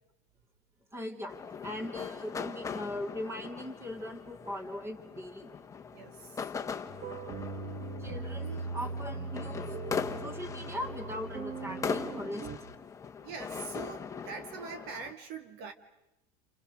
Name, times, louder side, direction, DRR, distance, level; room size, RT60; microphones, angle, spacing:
voice 1, 0.9-1.3 1.6-5.5 8.0-9.7 10.2-12.5, left 1 dB, 15° right, 3.3 m, -39 dB
sound 1, 1.3-15.1, left 6 dB, 15° left, 1.2 m, -40 dB
voice 2, 5.9-6.8 13.2-15.7, right 5 dB, 55° right, 2.0 m, -43 dB
sound 2, 6.9-12.6, right 4 dB, 35° right, 1.5 m, -40 dB
29.5 x 29.0 x 6.4 m
cardioid pair, 150°, 19 cm